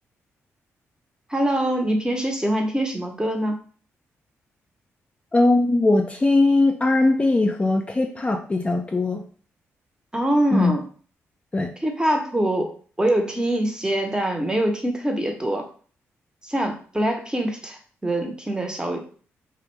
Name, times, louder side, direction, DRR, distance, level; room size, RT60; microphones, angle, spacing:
voice 1, 1.3-3.6 10.1-10.8 11.8-12.7 13.0-15.6 16.4-19.0, right 1 dB, 15° right, 3 dB, 0.7 m, -24 dB
voice 2, 5.3-9.2 10.5-10.7 11.5-11.7, left 2 dB, 25° left, 2 dB, 0.4 m, -20 dB
2.5 x 2.1 x 3.1 m, 0.42 s
supercardioid pair, 55°, 6 cm